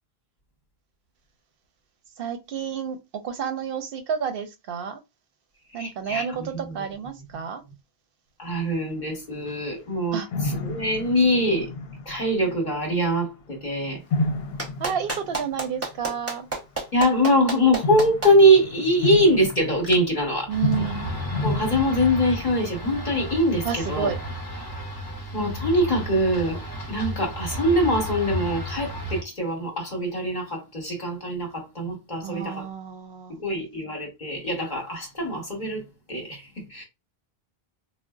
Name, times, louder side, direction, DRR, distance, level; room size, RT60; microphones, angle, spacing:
voice 1, 2.2-5.0 5.7-7.6 10.1-10.3 14.8-16.5 20.5-21.1 23.6-24.2 32.2-33.4, right 7 dB, 70° right, 0.7 m, -30 dB
voice 2, 5.8-6.8 8.4-10.2 10.4-11.7 12.1-14.0 16.9-20.5 21.4-24.1 25.3-32.6 33.4-35.8 36.1-36.8, equal, 50° left, 1.0 m, -23 dB
sound 1, 9.5-9.6 10.3-13.1 14.1-16.2 17.8-22.8, left 2 dB, 75° left, 0.8 m, -31 dB
Clapping, 14.6-18.3 19.8-19.9, right 3 dB, 15° right, 0.6 m, -29 dB
sound 2, 20.5-29.2, equal, 25° left, 0.7 m, -33 dB
3.7 x 2.0 x 2.2 m
omnidirectional pair, 1.0 m